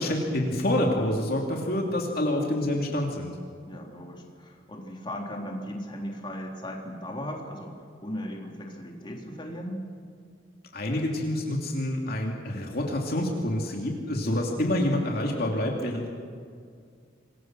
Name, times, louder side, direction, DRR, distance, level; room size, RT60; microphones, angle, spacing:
voice 1, 0.0-3.4 10.7-16.1, left 1 dB, 55° left, 0 dB, 2.9 m, -27 dB
voice 2, 3.7-7.7 8.0-9.8, equal, 25° left, 0 dB, 3.6 m, -37 dB
27.0 x 22.5 x 6.2 m, 2.2 s
head